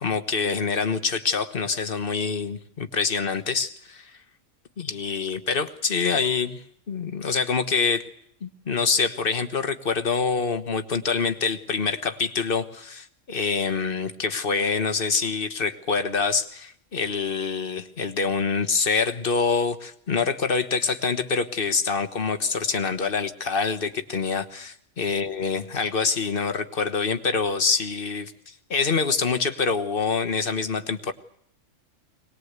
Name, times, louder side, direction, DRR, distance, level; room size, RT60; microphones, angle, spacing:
voice 1, 0.0-4.1 4.8-8.1 8.4-31.1, left 5 dB, 45° left, 10 dB, 1.4 m, -26 dB
22.5 x 20.0 x 8.2 m, 0.69 s
omnidirectional pair, 1.3 m